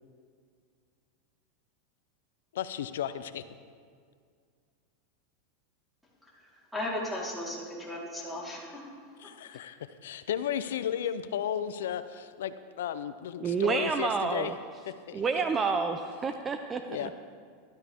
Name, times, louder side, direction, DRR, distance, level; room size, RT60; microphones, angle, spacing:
voice 1, 2.5-3.4 9.2-14.5 14.9-15.2 16.9-17.1, left 9 dB, 80° left, 12 dB, 0.5 m, -34 dB
voice 2, 6.7-8.9 9.2-9.3, left 1 dB, ahead, -7 dB, 3.9 m, -36 dB
voice 3, 13.4-14.5 15.1-17.1, right 5 dB, 25° right, 6 dB, 0.7 m, -29 dB
17.0 x 12.5 x 3.6 m, 2.1 s
hypercardioid pair, 110°, 0 cm